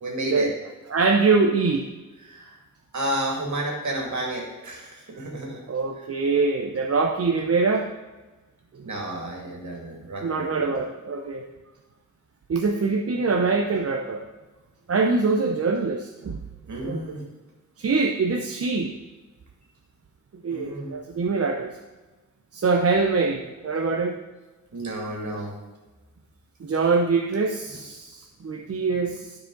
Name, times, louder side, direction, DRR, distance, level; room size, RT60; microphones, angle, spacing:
voice 1, 0.0-0.5 2.2-2.5 2.9-5.6 8.8-10.8 16.7-17.2 20.5-21.0 24.7-25.5 27.7-27.8, right 1 dB, 65° right, -1 dB, 2.4 m, -31 dB
voice 2, 0.9-1.9 5.7-7.9 10.2-11.5 12.5-14.2 14.9-16.4 16.8-17.0 17.8-18.9 20.4-21.7 22.5-24.1 26.6-29.3, right 4 dB, 50° right, 2 dB, 0.7 m, -23 dB
12.5 x 4.9 x 3.9 m, 1.2 s
wide cardioid pair, 95°, 31 cm